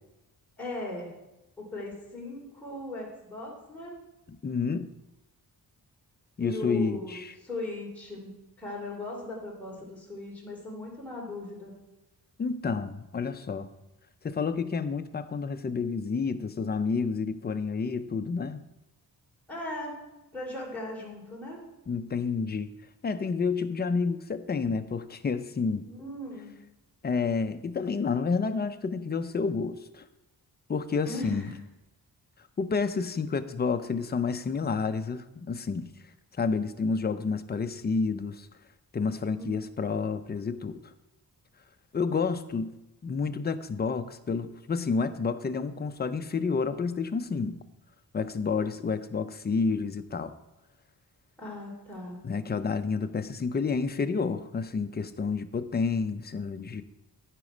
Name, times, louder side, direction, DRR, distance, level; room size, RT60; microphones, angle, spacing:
voice 1, 0.6-1.1 1.6-4.0 6.4-11.8 19.5-20.0 20.3-21.6 25.8-26.5 31.0-31.6 39.3-39.6 51.4-52.2, left 2 dB, 5° left, -4 dB, 2.8 m, -38 dB
voice 2, 4.4-4.9 6.4-7.3 12.4-13.7 14.2-18.6 21.9-22.7 23.0-25.9 27.0-30.0 30.7-31.5 32.6-35.9 36.4-38.5 38.9-40.8 41.9-42.7 43.0-47.6 48.1-50.3 52.2-56.8, left 5 dB, 25° left, 9 dB, 0.4 m, -29 dB
13.0 x 5.2 x 5.0 m, 0.97 s
wide cardioid pair, 165°, 38 cm